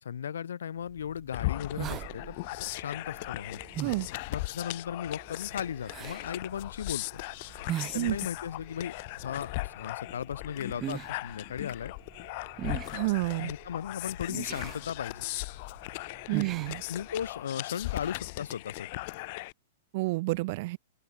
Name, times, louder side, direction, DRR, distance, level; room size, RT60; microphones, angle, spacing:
voice 1, 0.0-3.6 4.3-7.0 7.9-11.9 13.4-15.2 16.9-18.9, left 8 dB, 85° left, 1.1 m, -36 dB
sound 1, 0.9-17.5, right 12 dB, 30° right, 3.1 m, -43 dB
sound 2, 1.3-19.5, left 23 dB, 50° left, 1.3 m, -38 dB
voice 2, 12.9-13.5 16.3-16.8 19.9-20.8, right 22 dB, 55° right, 0.7 m, -29 dB
open air
hypercardioid pair, 130°, 0 cm